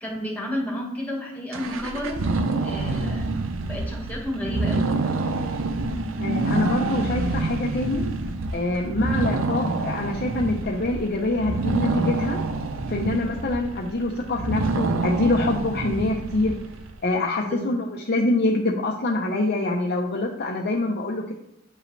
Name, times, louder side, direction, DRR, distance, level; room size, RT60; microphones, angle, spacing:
voice 1, 0.0-2.3 2.6-3.3 3.6-4.9 17.4-17.7, equal, 10° left, -1 dB, 1.5 m, -31 dB
sound 1, 1.5-16.9, right 3 dB, 80° right, 0.6 m, -27 dB
voice 2, 6.2-8.0 8.5-12.4 12.9-16.5 17.0-21.3, left 2 dB, 50° left, 0 dB, 0.7 m, -25 dB
8.5 x 5.0 x 3.2 m, 0.81 s
head